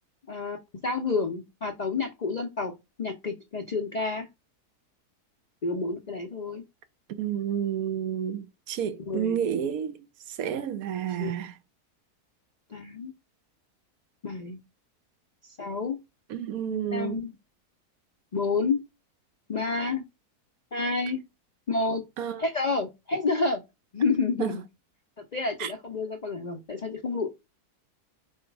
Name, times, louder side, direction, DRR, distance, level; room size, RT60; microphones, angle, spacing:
voice 1, 0.8-2.7 3.0-4.3 5.6-6.6 9.0-9.4 11.2-11.3 12.7-13.1 14.2-14.6 15.4-16.0 16.9-17.3 18.3-18.8 19.5-20.0 20.7-21.2 21.7-22.0 22.4-23.6 23.9-24.6 25.2-27.3, left 4 dB, 65° left, 0.4 m, -29 dB
voice 2, 7.1-10.0 10.3-11.5 16.3-17.2 22.2-22.4 24.4-24.5 25.6-25.7, right 9 dB, 70° right, 1.0 m, -30 dB
3.9 x 2.7 x 4.5 m
omnidirectional pair, 1.7 m